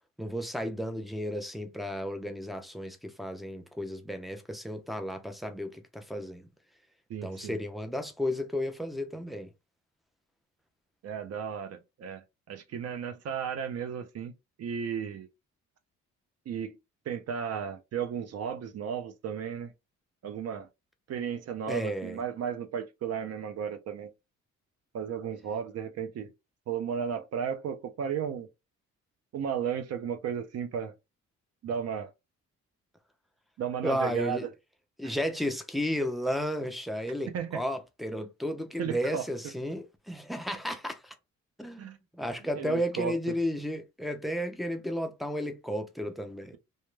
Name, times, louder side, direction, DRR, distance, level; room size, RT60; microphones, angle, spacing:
voice 1, 0.2-6.5 7.2-9.5 21.7-22.2 33.8-34.5 35.0-41.2 41.6-46.6, equal, ahead, 0.4 m, -33 dB
voice 2, 7.1-7.6 11.0-14.3 14.6-15.3 16.5-16.8 17.1-19.7 20.2-20.7 21.1-24.1 24.9-26.3 26.7-28.5 29.3-30.9 31.6-32.1 33.6-34.4 35.0-35.1 37.3-37.6 38.8-39.3 41.8-42.0 42.6-43.4, right 7 dB, 55° right, 0.6 m, -34 dB
2.1 x 2.1 x 3.1 m
cardioid pair, 90°, 30 cm